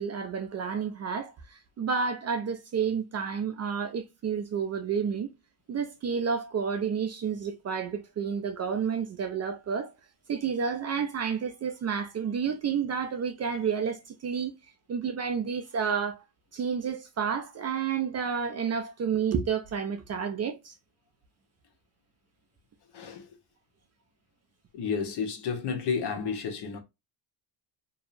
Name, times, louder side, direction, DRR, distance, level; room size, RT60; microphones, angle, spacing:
voice 1, 0.0-5.3 5.7-9.9 10.3-14.5 14.9-16.2 16.5-20.7, right 6 dB, 35° right, 0.4 m, -30 dB
voice 2, 22.9-23.3 24.7-26.8, left 6 dB, 55° left, 0.9 m, -31 dB
2.6 x 2.0 x 2.4 m
supercardioid pair, 80°, 49 cm